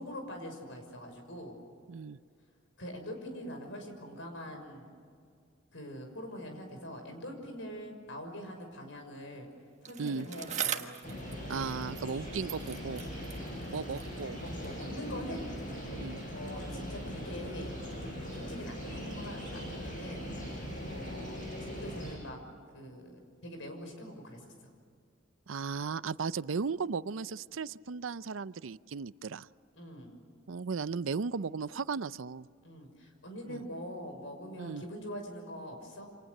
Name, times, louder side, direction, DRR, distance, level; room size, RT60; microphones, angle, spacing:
voice 1, 0.0-1.6 2.8-4.9 5.7-9.5 9.8-11.0 11.2-11.5 13.0-13.6 14.4-15.5 16.3-17.9 18.3-20.3 20.9-22.4 22.7-24.5 29.7-30.2 32.6-36.1, equal, 70° left, 4 dB, 6.2 m, -43 dB
voice 2, 1.9-2.2 10.0-10.3 11.5-13.0 13.7-14.4 15.9-16.2 25.5-29.5 30.5-32.5 33.5-33.6 34.6-34.8, right 5 dB, 80° right, 16 dB, 0.6 m, -36 dB
Bicycle, 9.8-12.2 12.5-14.9 15.6-15.7, right 8 dB, 35° right, 1.5 m, -41 dB
sound 1, 11.0-22.1, equal, 40° left, 6.2 m, -40 dB
29.0 x 26.5 x 6.7 m, 2.2 s
head